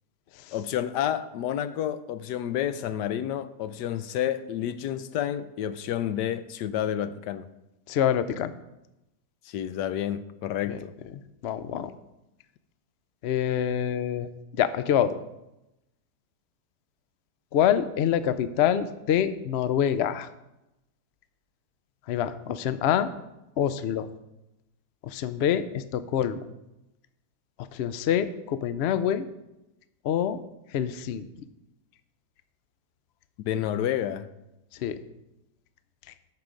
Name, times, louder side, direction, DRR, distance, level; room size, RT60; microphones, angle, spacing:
voice 1, 0.5-7.5 9.5-10.9 33.4-34.3, left 10 dB, 85° left, 1.2 m, -30 dB
voice 2, 7.9-8.5 10.7-10.8 11.4-11.9 13.2-14.3 14.6-15.1 17.5-20.3 22.1-23.1 23.6-24.1 25.0-26.4 27.7-29.2 30.0-30.4 30.7-31.3 34.8-35.0, left 9 dB, 65° left, 0.6 m, -26 dB
13.5 x 6.0 x 5.1 m
omnidirectional pair, 1.8 m